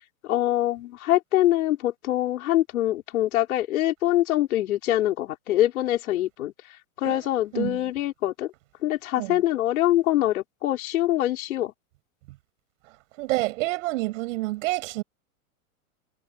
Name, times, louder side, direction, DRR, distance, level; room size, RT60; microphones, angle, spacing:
voice 1, 0.3-6.5 7.0-8.5 8.8-11.7, left 14 dB, 75° left, 5.2 m, -24 dB
voice 2, 13.2-15.0, right 20 dB, 60° right, 7.9 m, -28 dB
hypercardioid pair, 130°, 43 cm